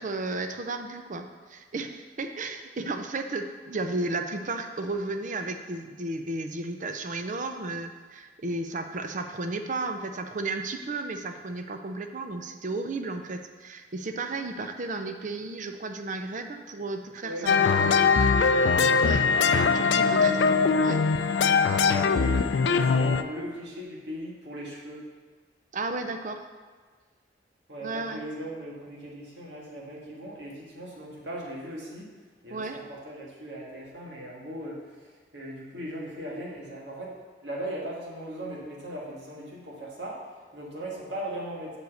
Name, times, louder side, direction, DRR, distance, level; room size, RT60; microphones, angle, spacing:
voice 1, 0.0-17.5 19.0-19.3 19.7-20.5 20.8-21.0 21.7-21.8 25.7-26.5 27.8-28.2 32.5-32.8, right 2 dB, 45° right, 7 dB, 0.6 m, -33 dB
voice 2, 17.2-18.2 19.9-20.3 21.5-25.1 27.7-32.1 32.4-37.2 37.4-41.8, equal, 80° right, -4 dB, 1.8 m, -38 dB
sound 1, 17.5-23.2, left 5 dB, 75° left, 0.4 m, -21 dB
6.8 x 4.8 x 6.4 m, 1.4 s
head